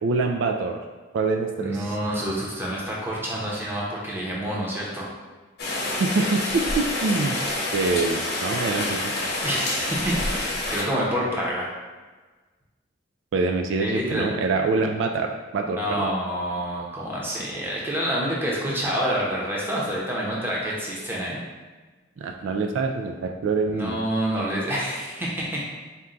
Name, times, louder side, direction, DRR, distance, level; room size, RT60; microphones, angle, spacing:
voice 1, 0.0-0.8 1.1-1.9 6.0-7.4 7.7-9.1 13.3-16.1 22.2-24.0, right 3 dB, 75° right, 3 dB, 0.3 m, -25 dB
voice 2, 1.6-5.1 9.4-11.7 13.8-14.3 15.6-21.4 23.7-25.6, equal, 10° right, -5 dB, 0.7 m, -27 dB
Rain, 5.6-10.8, left 2 dB, 55° left, 0.9 m, -27 dB
4.2 x 2.3 x 3.7 m, 1.3 s
head